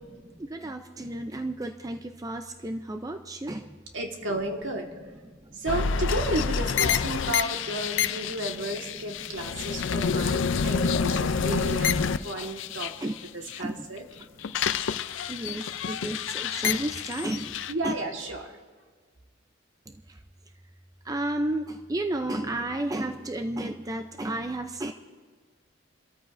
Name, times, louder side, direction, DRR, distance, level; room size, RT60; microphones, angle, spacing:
voice 1, 0.2-3.8 5.2-5.6 9.0-9.2 9.6-10.0 12.4-12.5 13.0-13.1 13.6-13.9 14.2-14.6 15.3-17.9 19.9-20.2 21.0-24.9, right 1 dB, 20° right, 6 dB, 0.5 m, -33 dB
voice 2, 3.9-4.9 5.5-14.0 15.0-15.7 17.7-18.7, right 1 dB, 70° right, 2 dB, 1.7 m, -33 dB
sound 1, 5.7-13.6 14.0-17.7, left 6 dB, 70° left, 0.5 m, -28 dB
29.0 x 13.5 x 2.6 m, 1.5 s
head